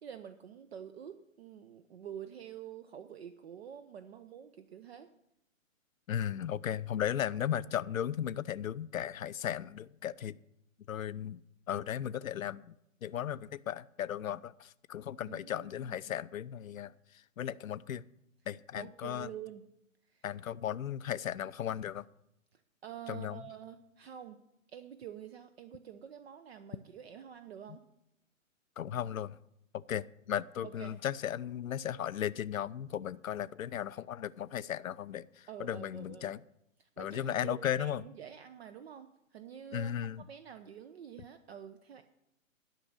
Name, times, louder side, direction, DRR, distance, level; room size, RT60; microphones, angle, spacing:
voice 1, 0.0-5.1 15.2-16.0 18.7-19.7 20.1-20.2 22.5-24.4 24.7-27.8 30.6-31.0 35.5-36.3 36.8-42.0, right 9 dB, 50° right, 9 dB, 0.8 m, -48 dB
voice 2, 6.1-10.4 10.9-11.4 11.7-12.6 13.0-16.9 17.4-18.0 18.5-19.3 20.2-22.1 23.1-23.4 28.8-29.4 29.7-36.4 37.0-38.0 39.7-40.2, left 10 dB, 80° left, 17 dB, 0.5 m, -36 dB
12.0 x 6.0 x 8.0 m, 0.81 s
figure-of-eight pair, 125°, 40 cm